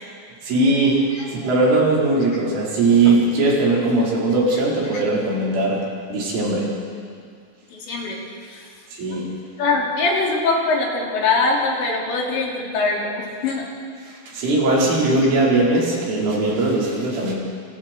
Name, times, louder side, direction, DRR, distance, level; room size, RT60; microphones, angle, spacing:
voice 1, 0.4-5.8 6.1-6.7 8.9-9.3 14.0-17.3, right 2 dB, 80° right, -5 dB, 7.4 m, -19 dB
voice 2, 7.7-8.7 9.1-9.2 9.6-13.7 15.0-15.1, left 3 dB, 65° left, -2 dB, 5.6 m, -23 dB
29.0 x 29.0 x 4.7 m, 2.2 s
omnidirectional pair, 5.5 m